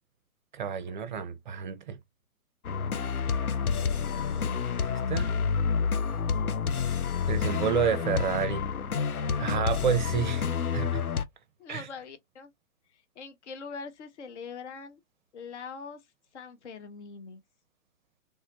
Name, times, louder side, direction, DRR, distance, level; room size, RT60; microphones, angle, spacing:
voice 1, 0.5-2.0 4.8-5.3 7.3-8.6 9.4-10.5 10.7-11.0 11.7-11.9, right 7 dB, 35° right, 0.5 m, -29 dB
sound 1, 2.6-11.2, left 6 dB, 90° left, 0.6 m, -29 dB
voice 2, 11.6-12.5 13.2-15.0 15.3-16.0 16.3-17.4, left 5 dB, 55° left, 0.7 m, -42 dB
3.4 x 2.1 x 2.5 m
figure-of-eight pair, 120°, 42 cm